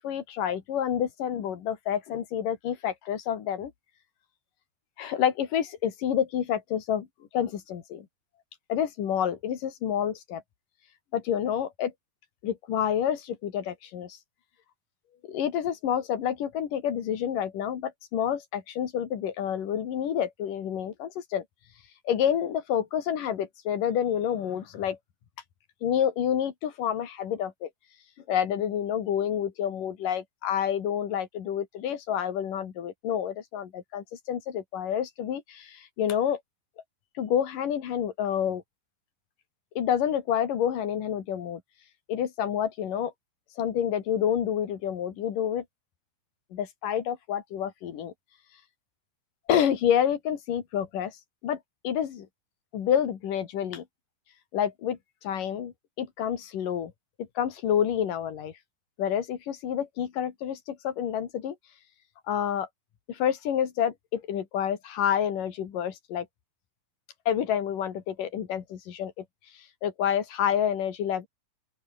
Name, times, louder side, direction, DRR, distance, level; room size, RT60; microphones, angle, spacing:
voice 1, 0.0-3.7 5.0-7.1 7.3-8.1 8.7-10.4 11.1-11.9 12.4-14.2 15.3-21.4 22.1-25.0 25.8-27.7 28.3-36.4 37.2-38.6 39.8-41.6 42.1-43.1 43.6-45.7 46.5-48.1 49.5-51.2 51.4-51.6 51.8-52.3 52.7-53.9 54.5-56.9 57.2-58.5 59.0-61.6 62.3-62.7 63.1-66.3 67.3-69.3 69.8-71.3, left 9 dB, 65° left, 3.8 m, -28 dB
open air
omnidirectional pair, 4.2 m